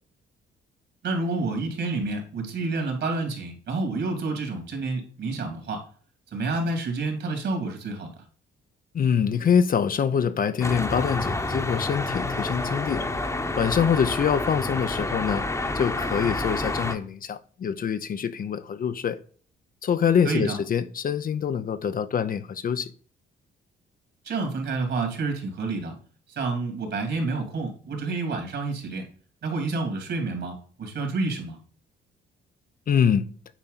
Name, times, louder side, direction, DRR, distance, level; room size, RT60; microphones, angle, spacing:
voice 1, 1.0-5.8 6.3-8.1 20.2-20.6 24.2-26.0 26.3-29.0 29.4-31.6, right 3 dB, 60° right, 3.0 m, -29 dB
voice 2, 8.9-13.0 13.6-15.4 15.7-19.2 19.8-22.9 32.9-33.3, left 7 dB, 45° left, 0.6 m, -25 dB
sound 1, 10.6-16.9, left 2 dB, 15° left, 1.0 m, -29 dB
9.0 x 4.4 x 4.1 m
cardioid pair, 90°, 20 cm